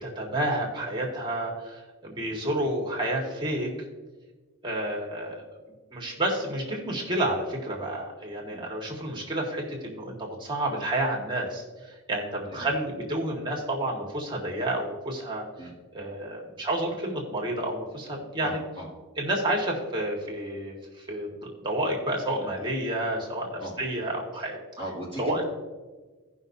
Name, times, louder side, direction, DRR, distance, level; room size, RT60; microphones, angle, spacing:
voice 1, 0.0-3.7 4.6-5.4 5.9-15.5 15.9-18.6 19.2-24.6 25.2-25.4, right 1 dB, 20° right, -2 dB, 1.7 m, -30 dB
voice 2, 18.4-18.9 23.6-23.8 24.8-25.4, right 1 dB, 25° left, -7 dB, 2.5 m, -38 dB
17.0 x 5.8 x 2.7 m, 1.3 s
head